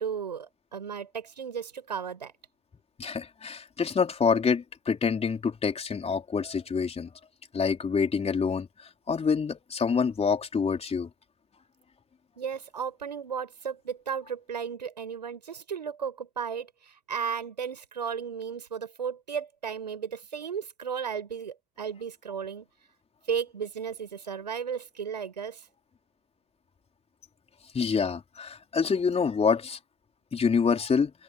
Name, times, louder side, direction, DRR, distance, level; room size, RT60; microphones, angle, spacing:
voice 1, 0.0-2.3 12.4-22.6 23.3-25.7, right 7 dB, 80° right, 6.6 m, -34 dB
voice 2, 3.0-7.1 7.5-8.7 9.1-11.1 27.7-29.8 30.3-31.1, left 5 dB, 30° left, 4.1 m, -26 dB
open air
figure-of-eight pair, 55°, 21 cm